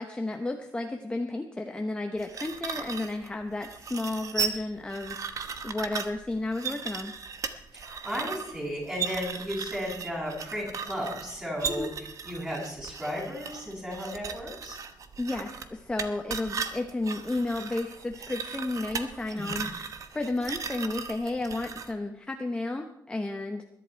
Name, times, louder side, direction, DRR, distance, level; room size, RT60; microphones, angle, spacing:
voice 1, 0.0-7.1 11.7-11.9 15.2-23.7, left 2 dB, 15° left, 4 dB, 1.0 m, -32 dB
sound 1, 2.2-21.9, right 6 dB, 50° right, 1.1 m, -37 dB
voice 2, 7.7-11.9 12.2-14.8 19.3-19.7, equal, 10° right, -4 dB, 7.3 m, -34 dB
21.0 x 11.0 x 4.6 m, 0.76 s
wide cardioid pair, 140°, 7 cm